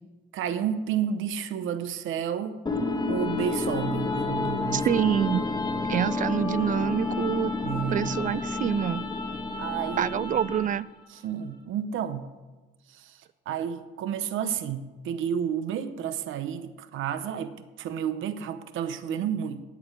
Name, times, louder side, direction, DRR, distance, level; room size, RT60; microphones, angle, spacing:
voice 1, 0.3-2.6 3.1-4.9 7.6-8.2 9.6-10.3 11.1-12.3 12.9-19.6, right 8 dB, 85° right, 12 dB, 0.8 m, -31 dB
sound 1, 2.7-10.8, left 3 dB, 20° left, 1.5 m, -30 dB
voice 2, 4.7-5.4 5.9-7.5 7.9-9.0 10.0-10.9, right 10 dB, 40° right, 20 dB, 0.4 m, -26 dB
8.6 x 8.4 x 8.9 m, 1.2 s
cardioid pair, 90°, 20 cm